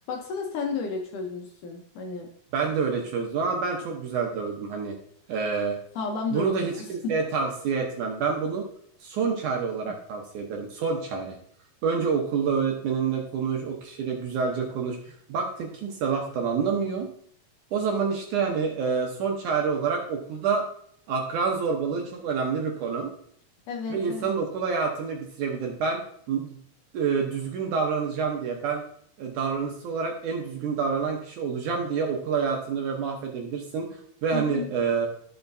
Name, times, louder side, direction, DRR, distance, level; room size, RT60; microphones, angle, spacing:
voice 1, 0.1-2.3 6.0-7.2 9.8-10.0 23.7-24.4 34.3-34.7, left 4 dB, 70° left, 2 dB, 2.1 m, -32 dB
voice 2, 2.5-5.0 5.3-5.8 6.3-8.7 9.0-11.4 11.8-15.0 15.3-17.1 17.7-20.7 21.1-23.1 23.9-26.0 26.3-26.6 26.9-28.8 29.2-35.1, right 5 dB, 70° right, 1 dB, 2.1 m, -27 dB
13.5 x 5.7 x 2.7 m, 0.63 s
omnidirectional pair, 4.3 m